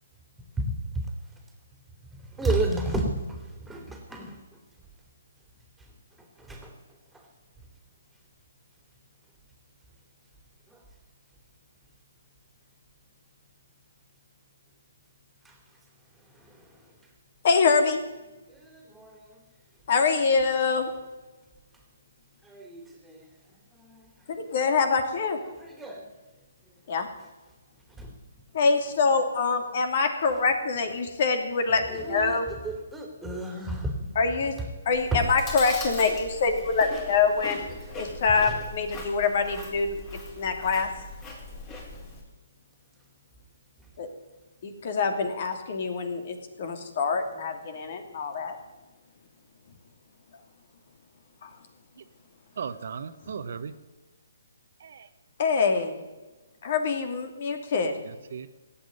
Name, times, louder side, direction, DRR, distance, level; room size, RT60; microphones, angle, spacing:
voice 1, 2.1-4.4 6.4-6.7 10.7-10.8 15.4-15.5 16.4-16.6 18.5-19.2 22.4-23.3 23.8-24.0 25.7-26.1 28.0-28.2 32.0-32.4 32.6-34.1 35.1-35.2, right 2 dB, 5° right, 2 dB, 2.9 m, -32 dB
voice 2, 17.4-18.0 19.9-20.9 24.3-25.4 26.9-27.1 28.5-32.5 34.1-34.5 34.9-37.6 37.9-40.0 40.4-40.9 44.0-44.1 44.6-48.6 51.4-51.5 53.3-53.4 55.4-56.0 56.6-58.0, left 4 dB, 50° left, 6 dB, 2.6 m, -25 dB
Chewing mastication, 34.9-42.2, left 2 dB, 20° left, 4.0 m, -40 dB
voice 3, 52.6-53.7 54.8-55.1 58.0-58.5, right 6 dB, 60° right, 10 dB, 1.0 m, -37 dB
17.0 x 8.6 x 9.5 m, 1.1 s
hypercardioid pair, 145°, 0 cm